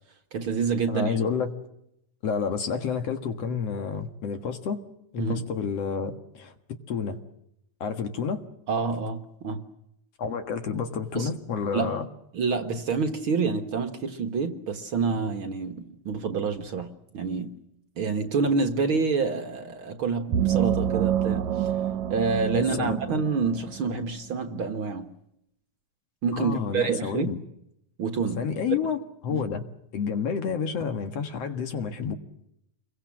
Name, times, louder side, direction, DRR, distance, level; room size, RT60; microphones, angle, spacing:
voice 1, 0.3-1.2 5.2-5.5 8.7-9.6 11.1-11.3 11.7-11.9 12.3-16.9 17.1-17.5 18.0-21.7 22.1-25.1 26.2-27.3 28.0-28.4 28.7-28.8 29.3-29.4, right 5 dB, 50° right, 6 dB, 1.9 m, -27 dB
voice 2, 0.9-1.5 2.2-4.8 5.1-7.2 7.8-8.4 10.2-12.1 22.5-23.2 26.3-27.4 28.4-29.6 29.9-32.2, left 6 dB, 60° left, 7 dB, 2.6 m, -30 dB
sound 1, 20.3-23.9, right 10 dB, 75° right, 2.4 m, -27 dB
28.5 x 22.5 x 7.5 m, 0.79 s
omnidirectional pair, 3.3 m